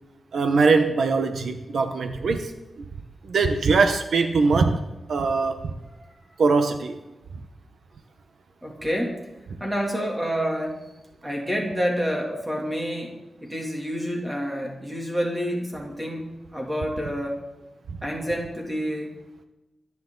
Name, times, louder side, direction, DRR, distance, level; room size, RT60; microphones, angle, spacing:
voice 1, 0.3-2.5 2.8-2.9 3.2-4.8 5.1-5.7 6.4-7.0, right 4 dB, 75° right, 7 dB, 1.0 m, -21 dB
voice 2, 8.6-9.2 9.6-10.8 11.2-17.4 18.0-19.2, equal, 10° right, -1 dB, 2.7 m, -28 dB
24.0 x 9.8 x 3.9 m, 0.99 s
wide cardioid pair, 180°, 0 cm